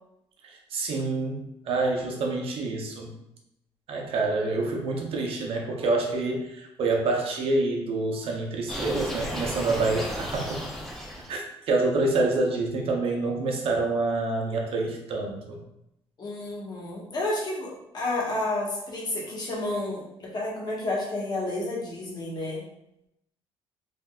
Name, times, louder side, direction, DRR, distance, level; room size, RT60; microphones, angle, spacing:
voice 1, 0.4-3.1 3.9-10.6 11.3-15.6, right 3 dB, 65° right, 1 dB, 0.7 m, -27 dB
sound 1, 8.7-11.4, equal, ahead, 0.6 m, -34 dB
voice 2, 16.2-22.6, left 2 dB, 40° left, -4 dB, 1.1 m, -31 dB
3.3 x 2.6 x 2.3 m, 0.83 s
cardioid pair, 95°, 10 cm